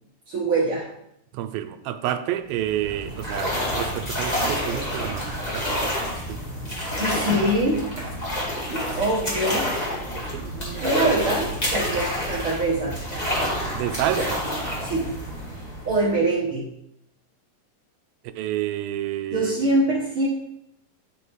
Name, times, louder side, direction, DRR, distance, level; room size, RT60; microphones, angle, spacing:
voice 1, 0.3-0.9 7.0-8.2 8.9-9.7 10.8-13.0 14.8-15.1 15.8-16.7 19.3-20.3, right 2 dB, 50° right, -5 dB, 1.7 m, -24 dB
voice 2, 1.3-6.4 10.3-10.9 13.7-14.5 18.4-19.7, right 12 dB, 85° right, 10 dB, 2.4 m, -30 dB
sound 1, 2.5-16.2, equal, 15° left, 1.9 m, -28 dB
10.5 x 5.2 x 4.7 m, 0.79 s
omnidirectional pair, 4.1 m